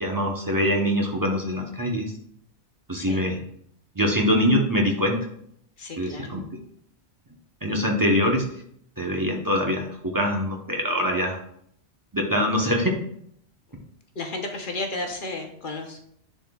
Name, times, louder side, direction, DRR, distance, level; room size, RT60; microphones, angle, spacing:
voice 1, 0.0-2.1 2.9-3.4 3.9-5.2 6.0-6.4 7.6-8.4 9.0-11.4 12.1-13.0, equal, 20° right, 0 dB, 0.9 m, -23 dB
voice 2, 5.8-6.4 14.2-16.0, left 2 dB, 50° left, 4 dB, 0.9 m, -33 dB
10.0 x 4.3 x 2.3 m, 0.67 s
omnidirectional pair, 1.2 m